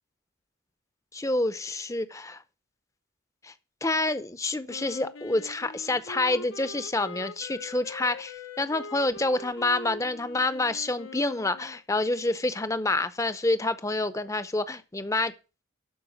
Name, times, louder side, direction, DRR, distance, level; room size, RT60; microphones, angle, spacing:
voice 1, 1.1-2.4 3.4-3.5 3.8-15.3, left 2 dB, 15° left, 0.6 m, -28 dB
Wind instrument woodwind instrument, 4.7-11.8, left 3 dB, 80° left, 1.1 m, -43 dB
12.0 x 4.8 x 7.3 m
head